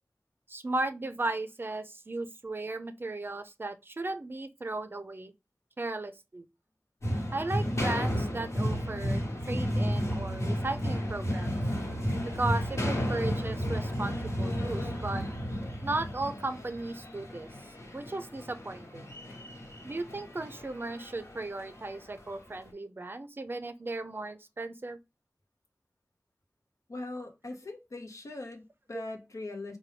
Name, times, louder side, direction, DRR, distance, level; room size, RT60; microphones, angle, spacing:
voice 1, 0.5-5.3 5.8-6.5 7.3-11.6 12.4-15.2 15.8-17.5 17.9-19.1 19.8-25.0 28.9-29.0, right 2 dB, 45° right, 0.4 m, -36 dB
sound 1, 7.0-22.3, equal, 70° left, 1.2 m, -33 dB
voice 2, 26.9-29.8, left 2 dB, 85° left, 0.7 m, -41 dB
4.5 x 2.2 x 3.2 m
wide cardioid pair, 45°, 5 cm